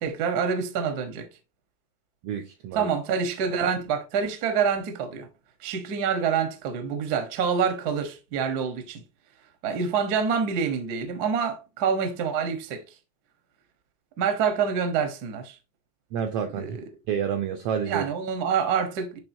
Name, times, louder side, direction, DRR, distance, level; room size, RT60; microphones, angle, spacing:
voice 1, 0.0-1.3 2.7-5.3 5.6-9.0 9.6-12.8 14.2-15.6 16.5-16.8 17.9-19.2, right 6 dB, 70° right, 0.9 m, -26 dB
voice 2, 2.2-2.9 16.1-16.8 17.1-18.1, right 8 dB, 85° right, 1.3 m, -29 dB
10.5 x 3.6 x 2.6 m
omnidirectional pair, 3.5 m